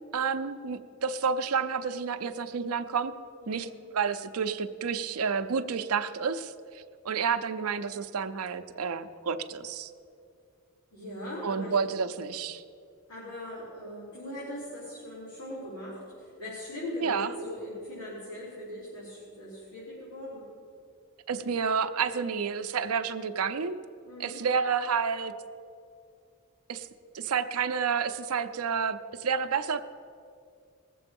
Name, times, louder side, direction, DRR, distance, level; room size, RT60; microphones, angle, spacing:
voice 1, 0.1-3.1 3.5-9.9 11.4-12.6 17.0-17.3 21.3-23.8 24.2-25.3 26.7-26.9 27.1-29.8, right 6 dB, 85° right, 9 dB, 0.6 m, -30 dB
voice 2, 3.4-3.8 10.9-11.9 13.1-20.5 24.0-24.4, left 1 dB, 75° left, -9 dB, 3.8 m, -40 dB
19.0 x 7.6 x 5.3 m, 2.4 s
head